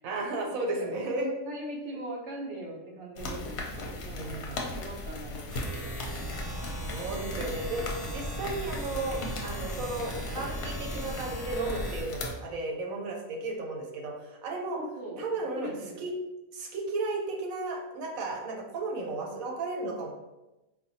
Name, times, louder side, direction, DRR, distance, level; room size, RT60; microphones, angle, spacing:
voice 1, 0.0-1.3 3.2-3.5 4.1-4.5 6.9-14.8 15.2-16.1 16.5-20.1, right 2 dB, 90° right, 0 dB, 1.1 m, -34 dB
voice 2, 1.4-5.9 14.7-15.2 15.5-16.0, right 1 dB, 65° right, -1 dB, 0.9 m, -41 dB
sound 1, 3.2-12.3, left 2 dB, 60° left, 0.8 m, -38 dB
sound 2, 5.5-12.0, equal, ahead, 1.0 m, -38 dB
4.1 x 2.2 x 2.6 m, 1.0 s
omnidirectional pair, 1.4 m